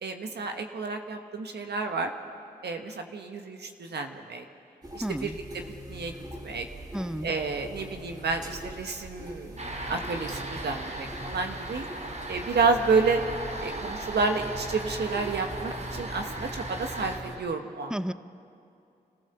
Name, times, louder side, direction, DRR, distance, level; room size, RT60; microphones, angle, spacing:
voice 1, 0.0-2.1 2.6-4.4 4.9-5.6 5.9-6.1 6.4-6.7 7.2-11.8 12.3-13.2 13.6-17.9, right 4 dB, 75° right, 5 dB, 1.4 m, -30 dB
sound 1, 4.8-17.4, right 1 dB, 25° right, 3.3 m, -43 dB
voice 2, 5.0-5.4 6.9-7.3 17.9-18.1, equal, 5° right, 14 dB, 0.7 m, -31 dB
sound 2, 9.6-17.2, right 1 dB, 45° right, 4.6 m, -37 dB
26.0 x 15.0 x 6.9 m, 2.6 s
cardioid pair, 45°, 17 cm